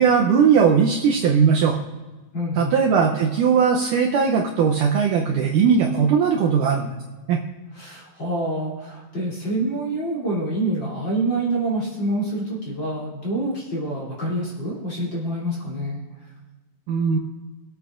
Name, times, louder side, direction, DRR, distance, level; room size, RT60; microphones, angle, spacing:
voice 1, 0.0-1.8 2.6-6.9 7.3-7.4 16.9-17.2, right 6 dB, 75° right, 0 dB, 2.0 m, -19 dB
voice 2, 2.3-2.8 7.7-16.0, right 1 dB, 30° left, -6 dB, 3.5 m, -26 dB
22.0 x 8.4 x 2.5 m, 1.2 s
omnidirectional pair, 4.3 m